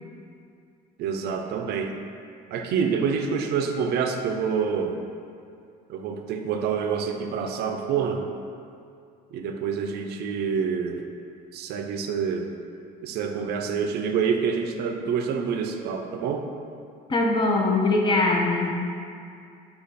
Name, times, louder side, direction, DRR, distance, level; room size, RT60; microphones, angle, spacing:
voice 1, 1.0-1.9 2.5-5.0 5.9-8.3 9.3-11.0 11.5-12.5 13.0-16.5, right 6 dB, 75° right, 5 dB, 0.4 m, -27 dB
voice 2, 17.1-18.8, left 2 dB, 30° left, 0 dB, 0.5 m, -22 dB
5.0 x 2.3 x 4.1 m, 2.4 s
cardioid pair, 110°, 17 cm